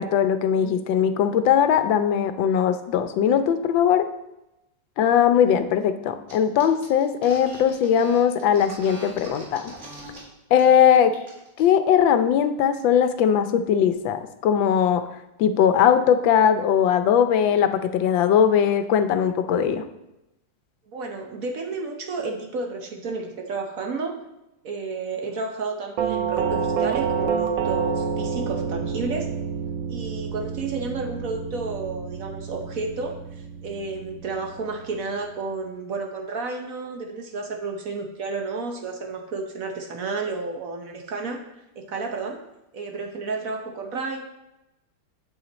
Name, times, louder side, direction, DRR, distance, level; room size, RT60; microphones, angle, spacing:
voice 1, 0.0-4.1 5.0-9.7 10.5-11.1 11.6-15.0 15.4-19.8, left 8 dB, 85° left, 10 dB, 1.4 m, -20 dB
sound 1, 6.3-6.4 6.6-10.2 10.5-10.8 11.1-11.6, right 2 dB, 40° right, 2.4 m, -42 dB
voice 2, 20.9-24.1 24.6-29.3 29.9-41.5 41.8-42.4 42.7-44.2, right 3 dB, 55° right, 2 dB, 1.1 m, -31 dB
Doorbell, 26.0-34.8, right 6 dB, 85° right, 1.5 m, -28 dB
8.2 x 7.9 x 4.1 m, 0.93 s
omnidirectional pair, 2.0 m